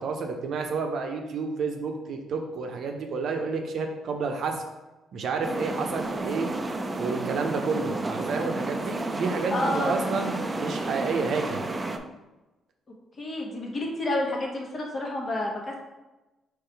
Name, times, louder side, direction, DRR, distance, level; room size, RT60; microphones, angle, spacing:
voice 1, 0.0-4.6 5.1-6.5 7.0-11.7, right 4 dB, 65° right, 3 dB, 0.7 m, -30 dB
sound 1, 5.4-12.0, right 2 dB, 25° right, 0.4 m, -31 dB
voice 2, 9.5-10.0 13.2-15.8, left 1 dB, 40° left, -1 dB, 1.2 m, -29 dB
3.8 x 3.1 x 4.4 m, 1.1 s
cardioid pair, 90°, 0 cm